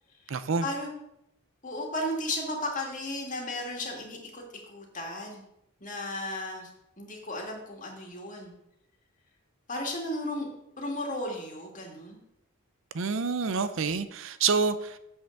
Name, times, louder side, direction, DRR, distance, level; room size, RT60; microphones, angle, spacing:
voice 1, 0.3-0.7 12.9-15.0, right 5 dB, 60° right, 12 dB, 0.5 m, -27 dB
voice 2, 1.6-5.4 5.8-6.7 7.0-8.5 9.7-10.5 10.8-12.2, left 1 dB, 35° left, 0 dB, 2.0 m, -34 dB
7.9 x 5.7 x 6.5 m, 0.84 s
head